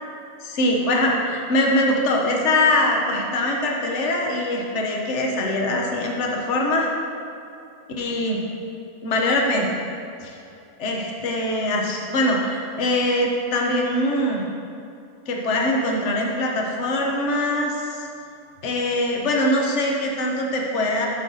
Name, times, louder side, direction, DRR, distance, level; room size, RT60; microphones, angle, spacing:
voice 1, 0.4-6.9 8.0-8.4 9.0-9.7 10.2-10.3 10.8-14.4 15.3-18.1 18.6-21.1, left 1 dB, 50° left, 0 dB, 1.2 m, -22 dB
8.0 x 6.3 x 4.0 m, 2.6 s
omnidirectional pair, 1.7 m